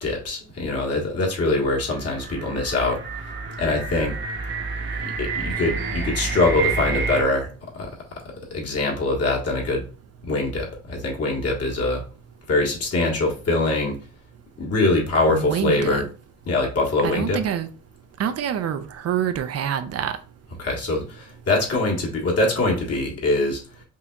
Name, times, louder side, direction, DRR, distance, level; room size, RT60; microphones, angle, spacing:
voice 1, 0.0-3.0 3.6-4.1 5.0-7.5 7.8-7.9 8.5-9.9 10.2-12.0 12.5-14.0 14.6-16.0 16.5-17.4 20.6-23.6, left 2 dB, 55° left, 1.7 m, -23 dB
sound 1, 1.6-7.2, right 4 dB, 40° right, 1.0 m, -29 dB
voice 2, 15.3-16.1 17.0-17.7 18.2-20.2, right 9 dB, 55° right, 0.5 m, -26 dB
5.4 x 2.8 x 2.4 m
cardioid pair, 90°, 30 cm